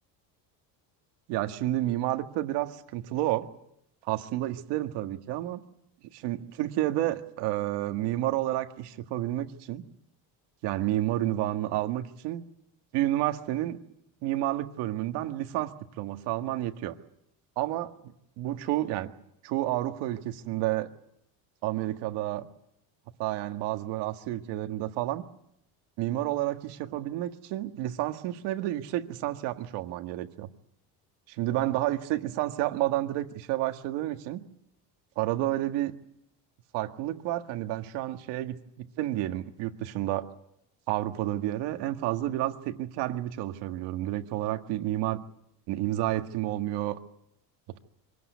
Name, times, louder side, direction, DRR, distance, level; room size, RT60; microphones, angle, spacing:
voice 1, 1.3-3.5 4.0-5.6 6.1-9.8 10.6-12.4 12.9-13.8 14.2-17.0 17.6-17.9 18.4-19.1 19.4-20.9 21.6-22.5 23.2-25.2 26.0-30.5 31.3-34.4 35.2-36.0 36.7-40.3 40.9-45.2 45.7-47.0, right 14 dB, 85° right, 7 dB, 1.8 m, -30 dB
24.5 x 18.0 x 9.5 m, 0.78 s
cardioid pair, 135°, 40 cm